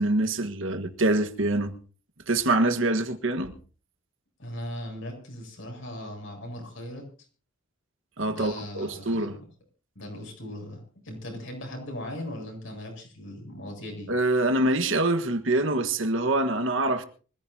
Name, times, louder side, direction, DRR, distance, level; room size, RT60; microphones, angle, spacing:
voice 1, 0.0-1.7 2.3-3.6 8.2-9.4 14.1-17.0, right 2 dB, 65° right, 1.6 m, -25 dB
voice 2, 4.4-7.1 8.3-9.3 9.9-14.1, left 1 dB, 65° left, 8.0 m, -38 dB
25.0 x 15.5 x 2.9 m
head